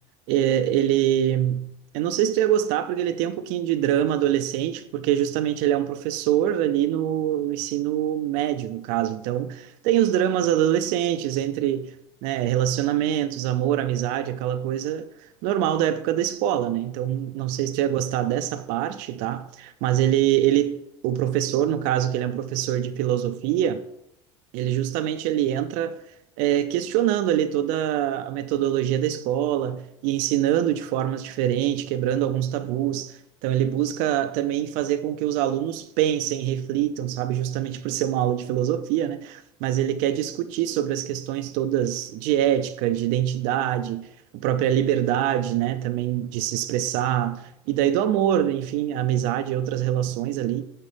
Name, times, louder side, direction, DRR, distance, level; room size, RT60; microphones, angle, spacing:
voice 1, 0.3-1.7 1.9-11.9 12.2-23.8 24.5-26.0 26.4-44.1 44.3-50.6, right 11 dB, 65° right, 0.4 m, -24 dB
7.2 x 5.4 x 3.3 m
hypercardioid pair, 90°, 15 cm